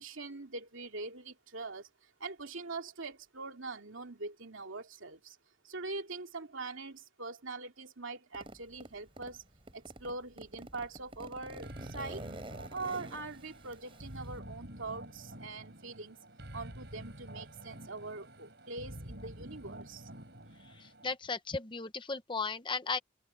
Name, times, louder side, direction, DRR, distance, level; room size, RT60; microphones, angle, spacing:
voice 1, 0.0-5.4 5.6-9.4 9.7-12.3 12.7-16.2 16.5-20.1, right 3 dB, 75° right, 2.6 m, -43 dB
Zipper (clothing), 8.3-9.4 9.7-14.4, right 1 dB, 25° right, 5.5 m, -47 dB
sound 1, 11.6-21.2, right 1 dB, 55° right, 5.6 m, -48 dB
voice 2, 20.6-23.0, left 4 dB, 25° left, 0.8 m, -36 dB
open air
head